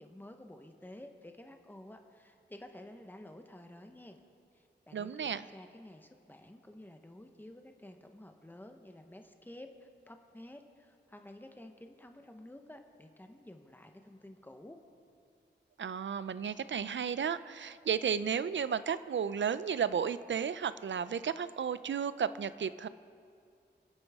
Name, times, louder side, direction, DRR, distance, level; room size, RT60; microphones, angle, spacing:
voice 1, 0.0-4.2 4.5-14.8, left 1 dB, 10° left, 5 dB, 1.1 m, -52 dB
voice 2, 4.9-5.4 15.8-22.9, right 7 dB, 80° right, 15 dB, 0.5 m, -33 dB
26.5 x 9.1 x 3.6 m, 2.3 s
wide cardioid pair, 65°, 19 cm